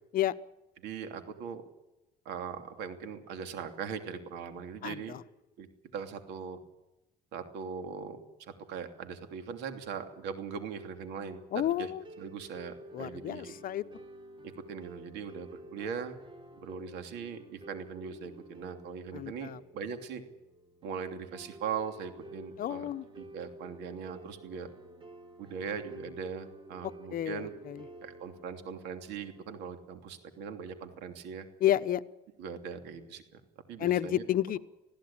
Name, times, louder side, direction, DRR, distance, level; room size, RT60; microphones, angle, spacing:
voice 1, 0.8-1.6 2.2-5.2 5.6-5.7 5.9-6.6 7.3-11.9 12.2-13.5 14.4-16.2 16.6-20.2 20.8-22.9 23.2-24.7 25.4-27.5 28.0-31.5 32.4-33.4 33.7-34.2, right 6 dB, 85° right, 7 dB, 2.9 m, -40 dB
voice 2, 4.8-5.2 11.5-12.0 12.9-13.8 19.1-19.6 22.6-23.0 27.1-27.4 27.7-27.8 31.6-32.0 33.8-34.6, left 12 dB, 55° left, 14 dB, 0.9 m, -30 dB
sound 1, 12.0-30.0, right 1 dB, 30° right, 3.0 m, -51 dB
21.5 x 15.5 x 8.8 m, 0.96 s
cardioid pair, 110°, 17 cm